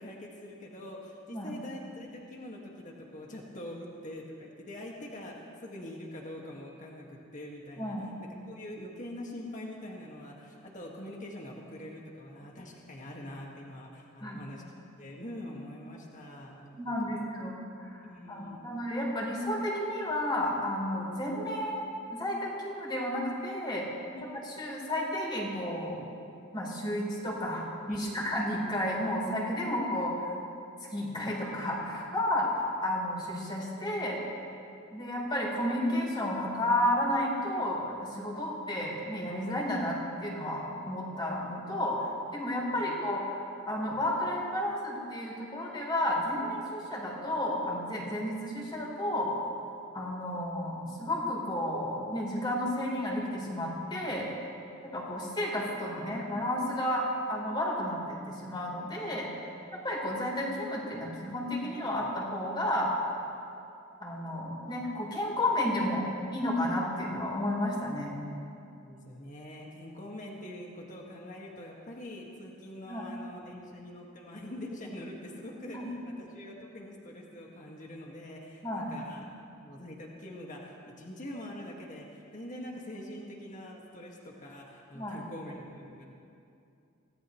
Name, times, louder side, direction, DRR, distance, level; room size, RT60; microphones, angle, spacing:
voice 1, 0.0-14.6 15.0-17.3 18.0-18.7 24.1-24.3 27.9-28.3 42.7-42.9 68.8-79.2 79.6-86.0, left 1 dB, 40° left, -1 dB, 1.9 m, -44 dB
voice 2, 7.8-8.2 14.2-14.4 16.7-23.8 24.6-26.0 26.5-30.3 30.9-34.2 34.9-49.3 49.9-54.3 54.9-59.3 59.8-62.9 64.0-68.1 72.9-73.1 75.7-75.8 78.6-78.9 84.9-85.2, left 1 dB, 20° left, -3 dB, 3.8 m, -32 dB
25.0 x 17.5 x 3.2 m, 2.6 s
head